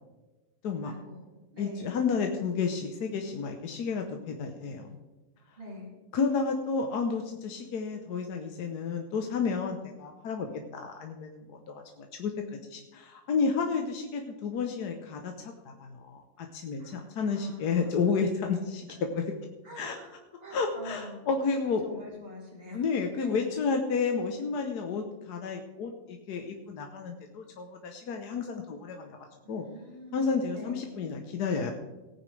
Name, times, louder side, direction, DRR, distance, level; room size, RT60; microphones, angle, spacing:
voice 1, 0.8-2.1 5.6-5.9 16.8-18.1 19.6-20.1 20.4-21.3 21.6-22.9 23.2-23.5 24.0-24.1 29.4-31.0, left 1 dB, 35° right, -4 dB, 3.3 m, -45 dB
voice 2, 1.6-4.9 6.1-12.3 12.7-19.2 19.8-19.9 20.5-21.8 22.7-29.2 29.5-29.6 30.1-31.7, left 5 dB, 75° left, 3 dB, 1.5 m, -31 dB
18.0 x 9.5 x 3.3 m, 1.1 s
omnidirectional pair, 1.7 m